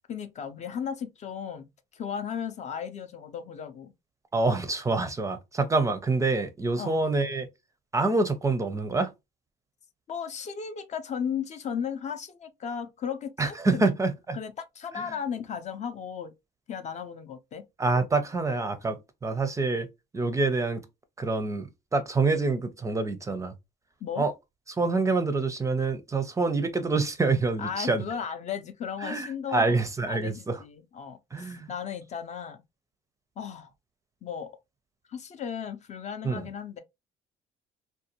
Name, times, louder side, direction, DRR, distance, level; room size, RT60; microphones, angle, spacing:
voice 1, 0.1-1.6 1.9-3.9 6.8-7.0 10.1-13.9 14.3-16.3 16.7-17.6 24.0-24.3 27.6-32.6 33.4-33.7 34.2-34.5 35.1-36.8, left 7 dB, 45° left, 0.5 m, -35 dB
voice 2, 4.3-7.5 7.9-9.1 13.4-14.4 14.9-15.2 17.8-19.9 20.1-20.9 21.2-23.5 24.2-24.3 24.7-28.0 29.0-30.6 31.3-31.7 36.2-36.5, right 3 dB, 20° right, 0.5 m, -26 dB
2.6 x 2.2 x 2.8 m
cardioid pair, 110°, 17 cm